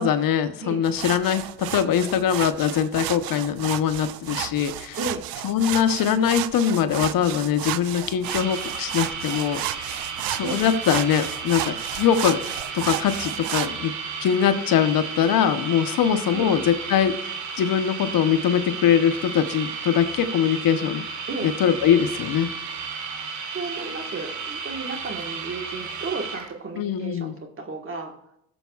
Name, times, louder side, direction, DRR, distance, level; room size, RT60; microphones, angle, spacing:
voice 1, 0.0-5.0 5.4-10.0 10.3-12.4 12.7-13.9 14.2-21.0 21.4-22.5 26.8-27.3, left 8 dB, 65° left, 10 dB, 0.8 m, -22 dB
sound 1, 0.8-13.7, right 14 dB, 70° right, 0.5 m, -32 dB
sound 2, 8.2-26.5, right 5 dB, 50° right, 1.2 m, -33 dB
voice 2, 23.5-28.1, right 3 dB, 35° right, 3 dB, 1.5 m, -33 dB
18.0 x 7.0 x 2.3 m, 0.78 s
cardioid pair, 85°, 37 cm